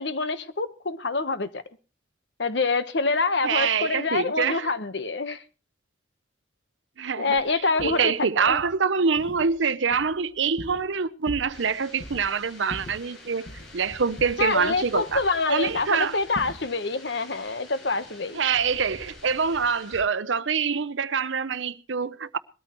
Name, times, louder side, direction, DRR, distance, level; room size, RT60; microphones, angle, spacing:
voice 1, 0.0-1.6 2.4-5.4 7.2-8.6 14.4-18.4, left 3 dB, 70° left, 1.1 m, -26 dB
voice 2, 3.4-4.7 7.0-7.4 7.8-13.5 13.7-15.2 15.5-16.2 18.3-22.4, right 5 dB, 80° right, 0.7 m, -25 dB
sound 1, 7.4-7.5 7.8-8.1 8.5-8.7 9.2-9.6 9.9-11.0 11.2-11.7 12.0-12.3 12.7-13.8 14.2-15.4 15.7-16.0 16.3-16.7, left 1 dB, 50° left, 1.8 m, -41 dB
sound 2, 11.5-20.0, left 2 dB, 90° left, 5.9 m, -47 dB
21.5 x 13.5 x 3.1 m
head